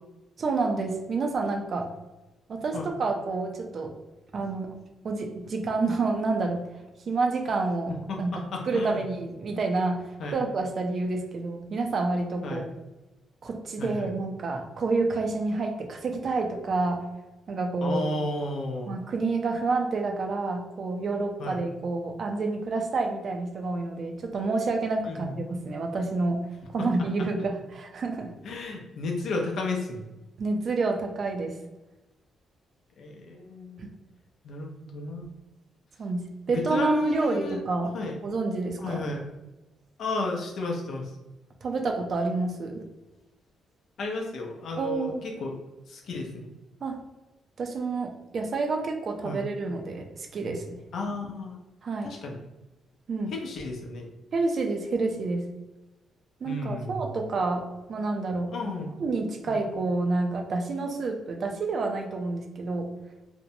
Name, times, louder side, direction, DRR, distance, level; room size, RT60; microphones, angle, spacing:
voice 1, 0.4-1.9 2.5-4.0 4.3-4.7 5.0-6.6 7.1-8.3 8.6-12.7 13.4-17.1 17.5-18.1 18.9-28.3 30.4-31.6 33.8-33.9 36.0-36.2 36.5-38.0 38.2-39.1 41.6-42.8 44.8-45.3 46.8-47.0 47.6-50.8 51.8-52.1 53.1-53.4 54.3-55.5 56.4-58.5 59.0-62.9, right 3 dB, 55° right, 3 dB, 0.4 m, -28 dB
voice 2, 8.1-9.0 10.2-10.4 12.4-12.7 13.8-14.1 17.8-19.0 21.4-21.6 25.1-25.4 26.8-26.9 28.4-30.0 33.0-33.9 34.4-35.3 36.5-37.6 37.9-38.2 38.8-39.2 40.0-41.1 44.0-45.6 45.9-46.5 49.2-49.4 50.9-51.6 52.0-52.4 53.3-54.1 56.4-56.9 58.5-58.9 59.5-59.6, left 2 dB, 70° left, 1 dB, 0.5 m, -33 dB
2.6 x 2.1 x 2.7 m, 1.0 s
cardioid pair, 95°, 0 cm